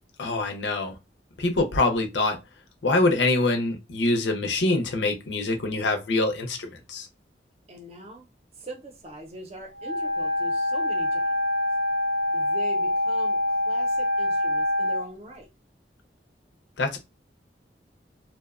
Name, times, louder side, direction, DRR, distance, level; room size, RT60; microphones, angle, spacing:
voice 1, 0.2-1.0 1.4-2.4 2.8-7.1 16.8-17.0, left 2 dB, 90° left, 0.6 m, -24 dB
voice 2, 7.7-8.3 8.5-11.4 12.3-15.5, equal, 35° right, 0.6 m, -42 dB
Wind instrument woodwind instrument, 9.7-15.0, left 1 dB, 85° right, 0.7 m, -25 dB
2.6 x 2.1 x 2.4 m
head